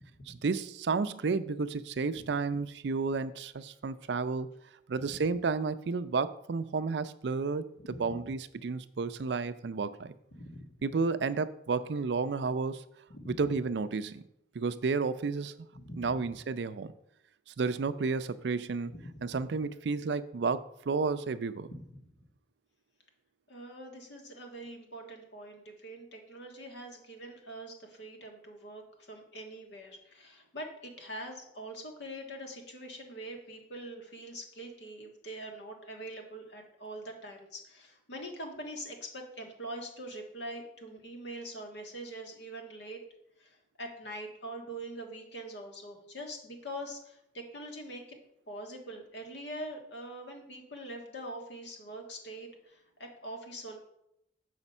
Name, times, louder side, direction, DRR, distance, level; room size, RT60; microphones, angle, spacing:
voice 1, 0.3-4.5 4.9-7.6 8.0-10.1 10.8-12.8 13.3-14.2 14.5-15.5 16.0-16.9 17.6-18.9 19.2-21.7, right 4 dB, 75° right, 13 dB, 0.4 m, -31 dB
voice 2, 5.0-5.3 7.8-8.2 10.3-10.6 13.1-13.3 15.7-16.3 18.9-19.0 19.2-19.3 23.5-43.0 43.4-48.2 48.5-53.8, right 1 dB, 80° left, 2 dB, 1.6 m, -44 dB
7.1 x 5.0 x 5.4 m, 0.78 s
head